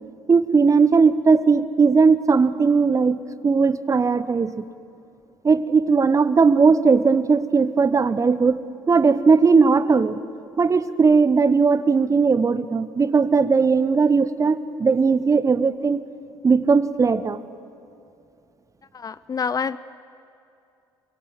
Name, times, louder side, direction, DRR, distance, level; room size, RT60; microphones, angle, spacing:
voice 1, 0.3-3.2 3.4-4.6 5.4-8.6 8.9-10.1 10.6-16.0 16.4-17.4, right 5 dB, 25° right, 15 dB, 1.1 m, -18 dB
voice 2, 18.9-19.8, left 6 dB, 30° left, 17 dB, 0.6 m, -27 dB
27.5 x 23.5 x 7.8 m, 2.6 s
figure-of-eight pair, 55°, 12 cm